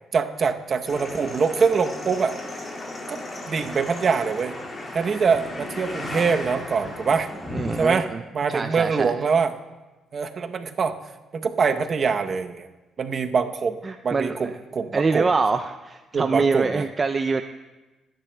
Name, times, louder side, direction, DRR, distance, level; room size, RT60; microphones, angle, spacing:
voice 1, 0.1-2.3 3.1-3.2 3.5-4.5 4.9-7.3 7.8-8.1 8.3-9.6 10.1-10.9 11.3-12.7 13.0-13.8 14.0-15.3 16.1-16.8, right 5 dB, 50° right, 7 dB, 0.8 m, -24 dB
sound 1, 0.9-8.0, left 2 dB, 35° left, 2.2 m, -35 dB
voice 2, 7.5-8.2 8.5-9.1 13.8-14.6 14.9-17.4, right 4 dB, 30° right, 7 dB, 0.4 m, -25 dB
23.0 x 10.5 x 2.2 m, 1.1 s
cardioid pair, 90°, 0 cm